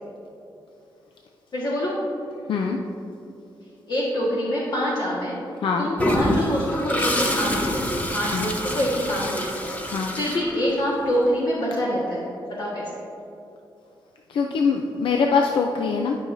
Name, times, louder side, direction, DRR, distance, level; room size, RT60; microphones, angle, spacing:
voice 1, 1.5-1.9 3.9-5.4 5.8-12.8, equal, 55° left, -6 dB, 1.5 m, -26 dB
Toilet flush, 6.0-11.0, left 1 dB, 20° left, 0.7 m, -26 dB
voice 2, 14.3-16.2, left 5 dB, 75° left, 2 dB, 0.5 m, -23 dB
12.0 x 5.7 x 2.6 m, 2.8 s
wide cardioid pair, 135°, 9 cm